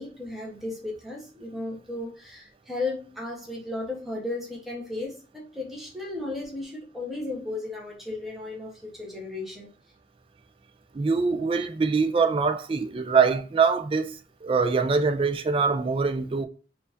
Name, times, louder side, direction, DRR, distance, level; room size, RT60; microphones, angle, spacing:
voice 1, 0.0-9.7, left 2 dB, ahead, 0.9 m, -35 dB
voice 2, 10.9-14.2 14.4-16.5, right 5 dB, 30° right, 0.3 m, -23 dB
4.5 x 2.4 x 2.5 m
head